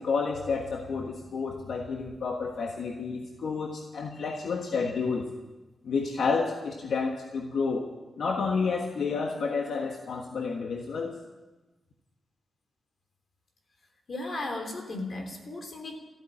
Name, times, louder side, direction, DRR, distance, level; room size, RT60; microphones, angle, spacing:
voice 1, 0.0-5.3 5.8-7.9 8.2-11.2, left 4 dB, 80° left, 2 dB, 1.4 m, -30 dB
voice 2, 14.1-16.0, left 2 dB, 50° left, 4 dB, 3.4 m, -35 dB
15.0 x 9.3 x 10.0 m, 1.1 s
wide cardioid pair, 110°, 0 cm